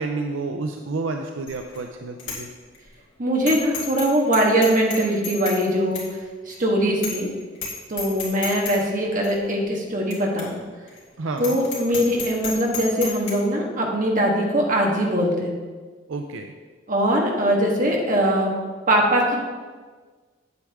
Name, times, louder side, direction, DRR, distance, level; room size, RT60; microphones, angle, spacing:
voice 1, 0.0-2.5 11.2-11.6 16.1-16.5, right 3 dB, 75° right, 4 dB, 0.5 m, -29 dB
Bicycle bell, 1.5-1.8 2.2-2.4 2.7-2.8 3.5-4.1 4.3-5.6 5.9-6.1 6.5-6.6 7.0-7.3 7.5-7.7 8.0-8.7 9.2-9.3 10.1-10.2 10.4-10.5 10.9-11.0 11.4-13.3, left 5 dB, 70° left, 2.4 m, -31 dB
voice 2, 3.2-6.0 6.4-7.3 7.9-10.6 11.4-15.5 16.9-18.5 18.9-19.4, equal, 40° right, -1 dB, 1.5 m, -21 dB
8.6 x 8.1 x 3.5 m, 1.4 s
head